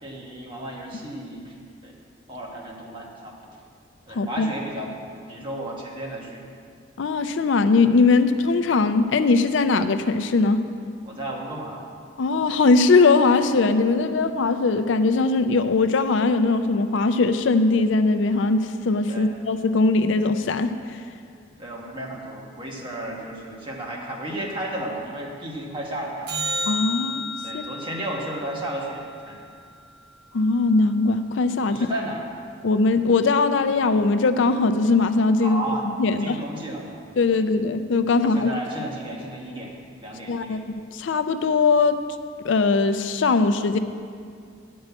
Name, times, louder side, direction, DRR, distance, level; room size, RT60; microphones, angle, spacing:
voice 1, 0.0-1.5 1.8-1.9 2.3-3.4 4.1-6.4 11.0-11.8 19.1-19.3 21.6-26.3 27.4-29.5 31.7-32.3 35.4-37.0 37.3-37.4 38.1-39.7 40.0-40.6, right 1 dB, 25° right, -2 dB, 1.4 m, -33 dB
voice 2, 4.1-4.5 7.0-10.6 12.2-21.0 26.7-27.3 27.5-27.6 30.3-31.9 32.6-36.4 37.2-38.5 40.3-42.0 42.4-43.8, left 3 dB, 75° left, 10 dB, 0.4 m, -20 dB
sound 1, 26.3-30.7 37.3-37.4, left 1 dB, 55° right, 1.1 m, -33 dB
9.0 x 5.4 x 8.1 m, 2.2 s
head